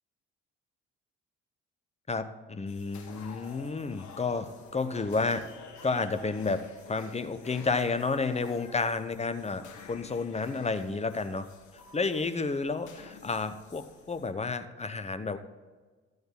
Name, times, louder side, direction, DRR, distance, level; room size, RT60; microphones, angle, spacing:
voice 1, 2.1-5.4 5.8-9.6 9.9-11.5 11.9-15.4, left 4 dB, 20° left, 10 dB, 0.9 m, -31 dB
sound 1, 2.7-14.3, left 5 dB, 60° left, 1.7 m, -50 dB
13.5 x 7.9 x 3.8 m, 1.4 s
hypercardioid pair, 50°, 33 cm